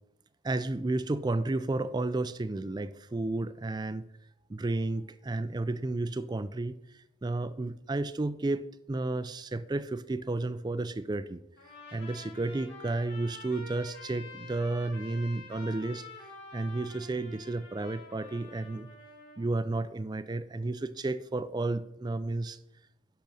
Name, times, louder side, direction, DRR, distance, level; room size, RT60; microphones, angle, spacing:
voice 1, 0.4-4.1 4.5-6.8 7.2-11.4 11.9-16.1 16.5-18.9 19.4-22.6, right 2 dB, 20° right, 14 dB, 0.4 m, -32 dB
Trumpet, 11.6-19.5, left 3 dB, 55° left, 3.7 m, -48 dB
10.0 x 6.1 x 5.4 m, 0.86 s
head